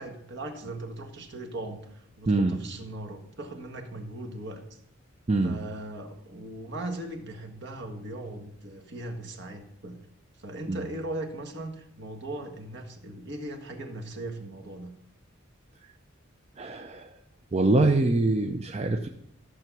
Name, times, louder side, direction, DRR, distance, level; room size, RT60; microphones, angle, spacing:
voice 1, 0.0-4.6 5.4-10.0 10.4-14.9, right 1 dB, 60° right, 3 dB, 1.7 m, -38 dB
voice 2, 2.3-2.6 5.3-5.6 10.7-10.8 16.6-17.1 17.5-19.1, right 2 dB, 30° right, 6 dB, 0.5 m, -24 dB
13.5 x 6.9 x 6.1 m, 0.73 s
head